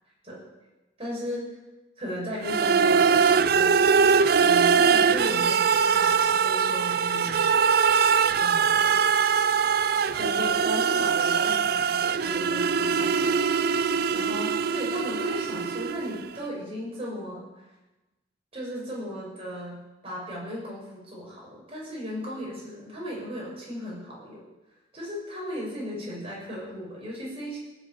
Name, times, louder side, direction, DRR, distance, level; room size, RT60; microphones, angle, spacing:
voice 1, 1.0-1.5 2.0-3.8 4.4-7.7 8.4-9.0 10.2-17.7 18.5-24.4 24.9-27.6, equal, 30° right, -4 dB, 6.6 m, -36 dB
sound 1, 2.4-16.3, right 6 dB, 55° right, 0.5 m, -22 dB
17.5 x 7.5 x 8.8 m, 1.1 s
head